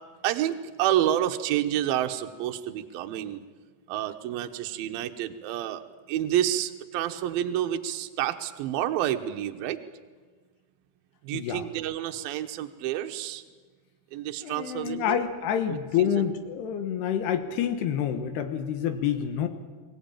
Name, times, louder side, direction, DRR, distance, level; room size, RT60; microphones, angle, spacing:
voice 1, 0.2-3.4 3.9-5.8 6.1-9.8 11.2-13.4 14.1-15.2 15.7-16.3, right 12 dB, 75° right, 7 dB, 2.6 m, -29 dB
voice 2, 11.3-11.6 14.4-19.5, left 9 dB, 80° left, 7 dB, 3.3 m, -28 dB
23.5 x 17.0 x 8.9 m, 1.4 s
omnidirectional pair, 4.8 m